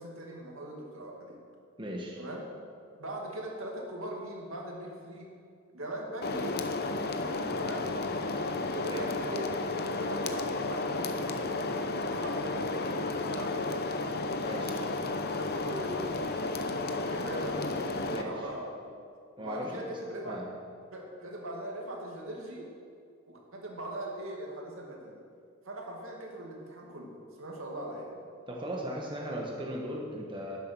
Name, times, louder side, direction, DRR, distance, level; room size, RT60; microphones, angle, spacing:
voice 1, 0.0-1.4 2.2-2.5 3.0-5.3 5.7-6.5 7.5-7.9 8.6-11.3 12.0-13.7 14.7-16.2 16.8-19.0 19.4-20.4 20.9-22.7 23.3-25.2 25.6-28.2, right 1 dB, 70° right, 0 dB, 2.4 m, -41 dB
voice 2, 1.8-2.2 8.9-9.1 14.4-14.8 18.1-18.5 19.4-19.9 20.2-20.5 28.5-30.6, equal, 25° right, -1 dB, 1.3 m, -37 dB
sound 1, 6.2-18.2, left 3 dB, 50° left, 0.8 m, -32 dB
11.5 x 10.0 x 6.2 m, 2.3 s
head